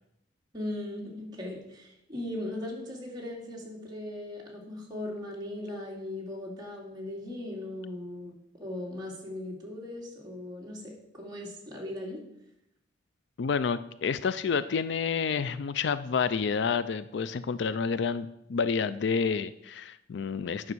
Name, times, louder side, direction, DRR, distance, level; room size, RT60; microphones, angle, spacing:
voice 1, 0.5-12.2, left 1 dB, 20° right, -3 dB, 2.4 m, -38 dB
voice 2, 13.4-20.7, left 5 dB, 65° left, 14 dB, 0.4 m, -29 dB
9.6 x 6.0 x 6.2 m, 0.82 s
head